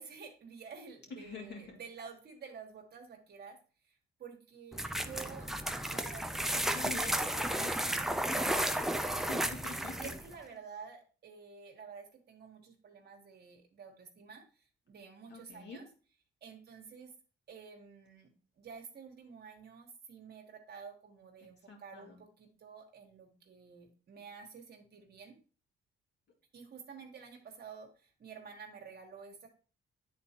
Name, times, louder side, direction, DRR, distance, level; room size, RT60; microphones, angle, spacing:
voice 1, 0.0-3.6 3.8-5.5 5.9-6.8 8.6-15.9 16.4-17.1 17.5-18.3 18.6-25.3 26.5-29.5, right 6 dB, 55° right, 1 dB, 1.2 m, -50 dB
voice 2, 1.2-1.8 6.7-8.1 8.4-8.7 9.3-9.9 15.3-15.8 21.7-22.2, left 4 dB, 60° left, 0 dB, 2.3 m, -46 dB
sound 1, 4.7-10.3, right 1 dB, ahead, 0.4 m, -33 dB
9.4 x 4.0 x 2.8 m, 0.38 s
cardioid pair, 90°, 20 cm